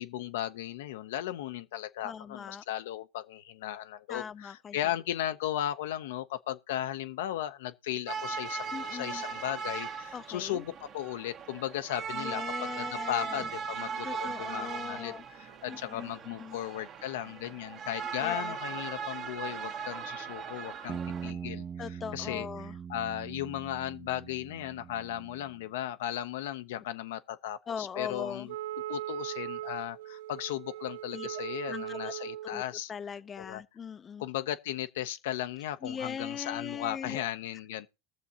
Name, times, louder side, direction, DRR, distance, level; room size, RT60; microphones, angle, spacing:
voice 1, 0.0-21.7 22.1-22.5 22.9-28.5 28.9-32.9 33.4-33.6 34.2-37.9, left 12 dB, 80° left, 0.7 m, -36 dB
voice 2, 2.0-2.6 4.1-4.9 8.7-9.2 10.1-10.6 12.1-13.5 14.0-15.2 15.7-16.6 18.2-18.6 21.8-22.8 27.7-28.5 31.1-31.3 31.7-32.1 32.4-32.6 32.9-34.2 35.8-37.2, left 7 dB, 30° left, 0.5 m, -40 dB
sound 1, 8.1-21.3, right 6 dB, 50° right, 1.5 m, -39 dB
sound 2, 20.9-25.6, right 7 dB, 30° right, 0.7 m, -42 dB
Wind instrument woodwind instrument, 28.5-32.6, right 13 dB, 90° right, 0.5 m, -39 dB
20.5 x 6.9 x 2.8 m
hypercardioid pair, 95°, 0 cm